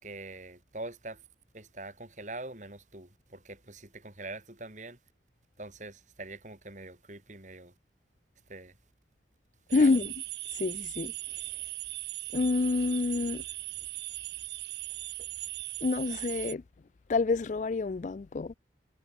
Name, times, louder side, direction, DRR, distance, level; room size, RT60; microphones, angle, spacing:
voice 1, 0.0-1.3 1.5-5.0 5.6-7.7 8.5-8.8 9.7-10.0, right 2 dB, 45° right, 5.5 m, -44 dB
voice 2, 9.7-10.2 10.5-11.1 12.3-13.4 15.8-16.6 17.1-18.5, left 3 dB, 45° left, 0.4 m, -27 dB
sound 1, 9.7-16.5, right 18 dB, 75° right, 0.7 m, -39 dB
head